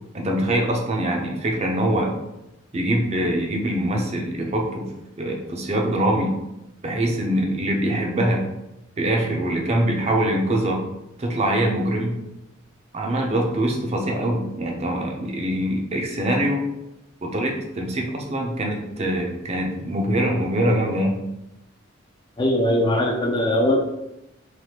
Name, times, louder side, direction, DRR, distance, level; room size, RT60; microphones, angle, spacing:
voice 1, 0.1-2.1 2.7-4.9 5.2-6.3 6.8-8.4 9.0-10.8 11.2-12.2 12.9-16.6 17.2-21.2, right 1 dB, 30° right, 1 dB, 0.5 m, -23 dB
voice 2, 22.4-23.8, left 1 dB, 20° left, 1 dB, 0.3 m, -20 dB
3.3 x 2.5 x 2.8 m, 0.90 s
head